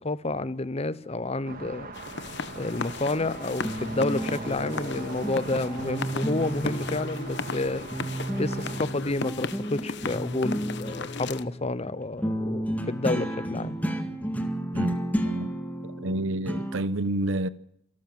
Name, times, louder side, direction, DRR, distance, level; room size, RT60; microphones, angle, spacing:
voice 1, 0.0-1.9 2.5-7.9 8.4-13.8, left 2 dB, 30° left, 0.8 m, -30 dB
sound 1, 1.4-8.8, right 3 dB, 45° right, 1.9 m, -41 dB
sound 2, 1.9-11.4, left 4 dB, 55° left, 1.1 m, -36 dB
sound 3, 3.1-7.7 7.9-16.8, equal, 10° left, 1.9 m, -32 dB
voice 2, 15.2-15.5 16.0-17.5, right 1 dB, 65° right, 1.0 m, -29 dB
27.5 x 13.0 x 7.6 m
head